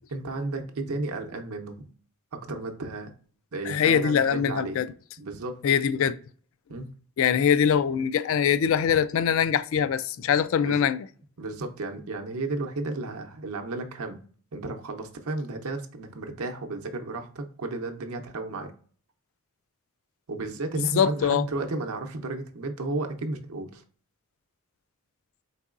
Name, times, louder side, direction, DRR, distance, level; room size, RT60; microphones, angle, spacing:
voice 1, 0.1-1.8 2.3-3.1 3.5-4.8 5.2-5.6 6.7-6.9 10.6-10.9 11.4-14.2 14.5-18.7 20.3-23.8, right 2 dB, 75° right, 0.7 m, -33 dB
voice 2, 3.7-4.9 5.6-6.2 7.2-11.0 20.8-21.5, left 8 dB, 60° left, 0.3 m, -23 dB
4.5 x 4.0 x 2.4 m
head